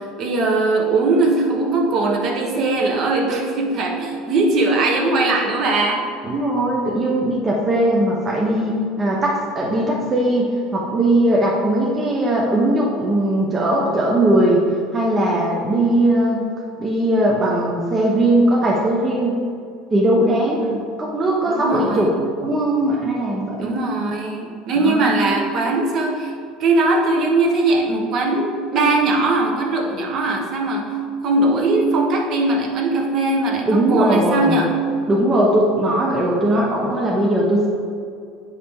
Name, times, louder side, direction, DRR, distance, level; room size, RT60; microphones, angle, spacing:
voice 1, 0.0-6.1 20.6-20.8 21.5-22.2 23.6-26.3 26.6-31.0 31.2-34.8, right 2 dB, 40° right, 1 dB, 1.0 m, -20 dB
voice 2, 6.2-14.6 14.9-16.5 16.8-19.4 19.9-20.6 21.0-22.1 22.4-23.7 24.8-25.1 33.7-34.6 35.1-37.7, right 1 dB, 20° right, -3 dB, 0.7 m, -19 dB
8.4 x 4.9 x 3.5 m, 2.3 s
cardioid pair, 160°, 0 cm